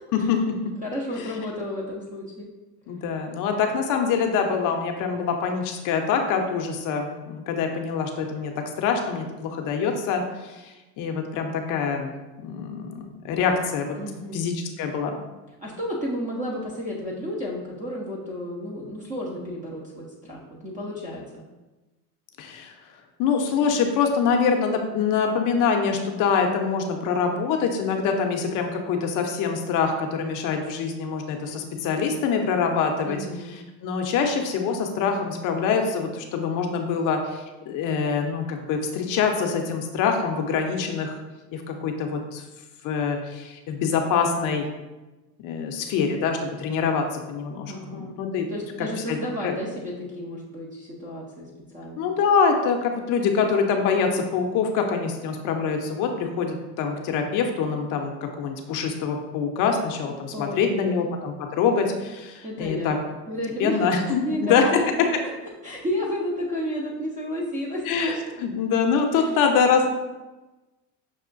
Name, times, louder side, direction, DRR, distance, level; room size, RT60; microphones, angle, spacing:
voice 1, 0.1-0.5 1.2-1.3 2.9-8.5 8.8-12.1 12.4-13.9 14.3-15.2 22.4-22.7 23.2-33.2 33.8-41.2 41.5-42.4 42.8-44.7 45.4-48.5 48.8-49.2 49.4-49.6 52.0-63.0 63.6-64.7 67.9-69.9, left 6 dB, 40° left, 4 dB, 0.5 m, -25 dB
voice 2, 0.8-2.5 14.0-14.4 15.6-21.4 33.1-33.6 47.7-48.1 48.5-52.1 60.3-61.0 62.4-64.8 65.6-67.8 68.3-68.4 69.1-69.3, equal, 20° right, -3 dB, 0.3 m, -32 dB
6.1 x 2.1 x 2.4 m, 1.1 s
supercardioid pair, 110°, 49 cm